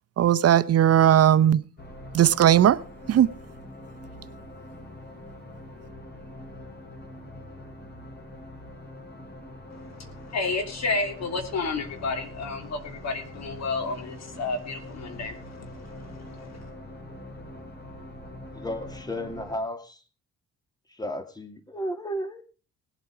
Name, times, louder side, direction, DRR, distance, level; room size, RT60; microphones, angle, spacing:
voice 1, 0.2-1.6 2.1-2.8 3.1-3.3, right 10 dB, 55° right, 0.7 m, -18 dB
sound 1, 1.8-19.6, left 1 dB, 35° left, 6.1 m, -43 dB
voice 2, 9.7-16.7, left 3 dB, 60° left, 3.3 m, -31 dB
voice 3, 18.5-20.0 20.9-22.4, equal, 15° left, 2.3 m, -33 dB
19.0 x 8.1 x 4.9 m
cardioid pair, 90°, 30 cm